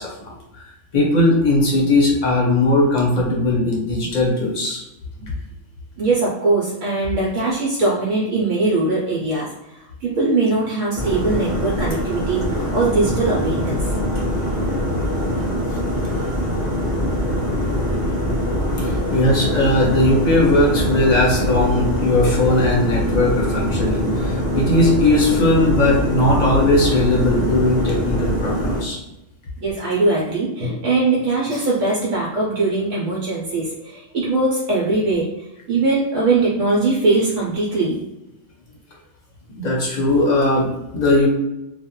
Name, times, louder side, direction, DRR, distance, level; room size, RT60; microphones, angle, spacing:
voice 1, 0.0-4.8 18.8-29.0 39.6-41.3, left 2 dB, 45° left, -2 dB, 0.7 m, -18 dB
voice 2, 6.0-13.9 29.6-35.3 35.7-38.0, right 3 dB, 80° right, -5 dB, 1.0 m, -21 dB
sound 1, 10.9-28.8, equal, 30° right, 0.8 m, -23 dB
2.4 x 2.2 x 2.9 m, 0.93 s
omnidirectional pair, 1.3 m